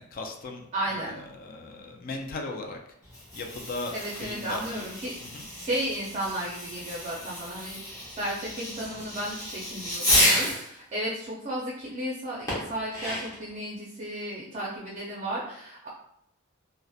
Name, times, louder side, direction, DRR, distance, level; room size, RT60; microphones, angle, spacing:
voice 1, 0.0-2.8 3.3-3.9 4.2-4.9 5.2-5.4, left 3 dB, 40° left, 2 dB, 0.3 m, -37 dB
voice 2, 0.7-1.1 3.9-5.1 5.5-15.9, right 1 dB, 30° right, -5 dB, 0.5 m, -34 dB
Fireworks, 3.0-10.7 12.5-13.5, left 1 dB, 15° left, 0.8 m, -30 dB
2.8 x 2.0 x 2.3 m, 0.73 s
head